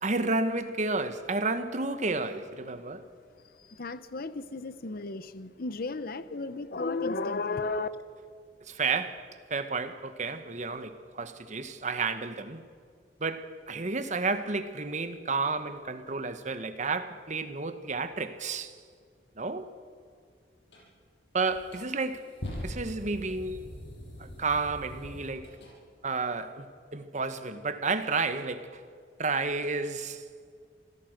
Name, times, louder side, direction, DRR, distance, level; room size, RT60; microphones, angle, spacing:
voice 1, 0.0-3.1 8.7-12.6 13.2-18.7 19.4-19.7 21.3-22.3 22.6-23.6 24.2-25.6 26.0-28.8 29.2-30.2, right 3 dB, 45° right, 1.3 m, -31 dB
voice 2, 3.4-7.9, left 3 dB, 55° left, 0.8 m, -34 dB
sound 1, 20.7-20.8 21.4-25.7, left 1 dB, 80° left, 6.7 m, -42 dB
26.0 x 16.5 x 6.6 m
head